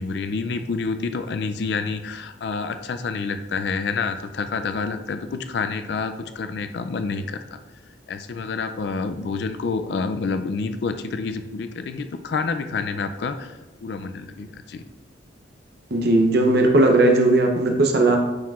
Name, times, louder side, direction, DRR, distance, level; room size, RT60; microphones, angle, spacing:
voice 1, 0.0-7.6 8.1-14.8, left 4 dB, 60° left, 9 dB, 0.4 m, -28 dB
voice 2, 15.9-18.2, right 2 dB, 55° right, 2 dB, 0.7 m, -17 dB
9.4 x 4.5 x 2.4 m, 1.1 s
head